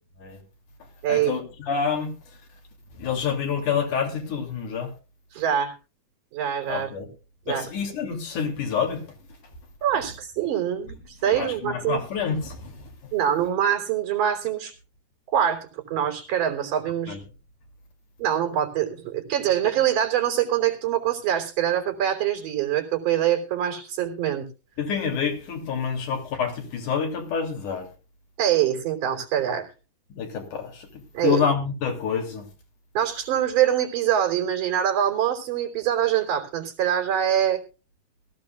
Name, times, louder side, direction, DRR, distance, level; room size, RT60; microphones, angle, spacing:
voice 1, 1.1-2.1 3.0-4.9 6.7-7.1 7.5-9.0 11.3-12.8 17.1-17.2 24.8-27.9 30.1-32.5, left 6 dB, 75° left, 4.4 m, -27 dB
voice 2, 5.3-5.7 6.3-6.9 7.5-7.6 9.8-12.0 13.1-14.7 15.3-17.2 18.2-24.5 28.4-29.7 31.1-31.4 32.9-37.6, right 10 dB, 85° right, 4.7 m, -24 dB
21.0 x 14.5 x 2.4 m
omnidirectional pair, 3.6 m